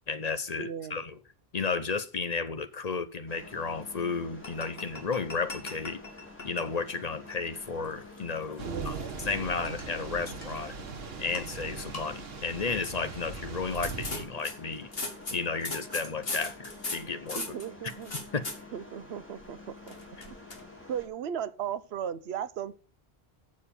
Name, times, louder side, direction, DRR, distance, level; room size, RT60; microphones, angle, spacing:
voice 1, 0.1-1.1 1.5-6.0 6.4-10.7 11.2-14.9 15.3-17.4 18.3-18.5, left 4 dB, 45° left, 0.8 m, -33 dB
voice 2, 0.6-1.0 8.6-9.2 17.3-18.1 18.7-20.0 20.3-20.4 20.9-22.8, right 8 dB, 90° right, 0.9 m, -36 dB
sound 1, 3.3-21.1, left 2 dB, 10° left, 2.3 m, -49 dB
sound 2, 4.4-6.7 7.0-7.2 7.8-9.4 9.7-9.9 10.4-10.8 11.3-11.4 11.7-12.0 12.7-13.0 13.6-18.6 19.9-20.6, left 2 dB, 70° left, 2.3 m, -39 dB
Thunder / Rain, 8.6-14.2, right 4 dB, 75° right, 1.3 m, -40 dB
7.4 x 6.5 x 6.8 m
omnidirectional pair, 1.0 m